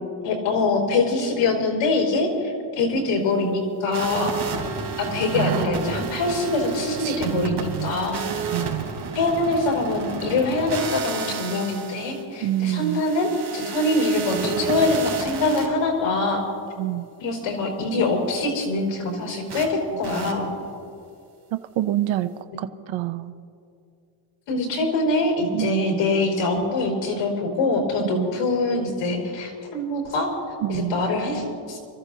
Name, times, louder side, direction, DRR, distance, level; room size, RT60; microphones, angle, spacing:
voice 1, 0.2-4.3 5.0-8.3 9.1-16.4 17.2-20.5 24.5-31.8, left 2 dB, 85° left, 1 dB, 4.7 m, -24 dB
sound 1, 3.9-15.7 19.5-19.7 20.0-20.3, right 5 dB, 50° right, 3.4 m, -32 dB
voice 2, 5.3-5.8 7.0-7.9 8.5-8.9 12.4-13.0 16.8-17.1 21.5-23.3 25.5-26.0 28.1-28.3 30.6-31.0, right 14 dB, 65° right, 10 dB, 0.7 m, -27 dB
29.5 x 14.5 x 2.8 m, 2.4 s
cardioid pair, 140°, 50 cm